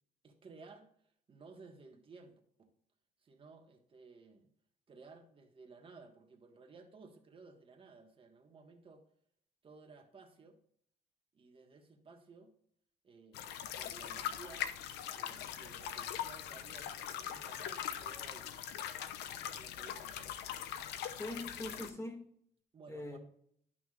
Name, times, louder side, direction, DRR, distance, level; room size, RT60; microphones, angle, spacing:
voice 1, 0.2-2.7 3.2-4.5 4.9-9.0 9.6-10.6 11.3-12.5 13.0-14.7 15.1-18.5 19.0-20.4 22.7-23.2, right 4 dB, 30° right, 1.6 m, -57 dB
sound 1, 13.3-21.9, left 10 dB, 80° left, 0.7 m, -41 dB
voice 2, 21.2-22.3 22.9-23.2, left 1 dB, 15° left, 2.1 m, -42 dB
11.5 x 5.9 x 2.5 m
cardioid pair, 110°, 17 cm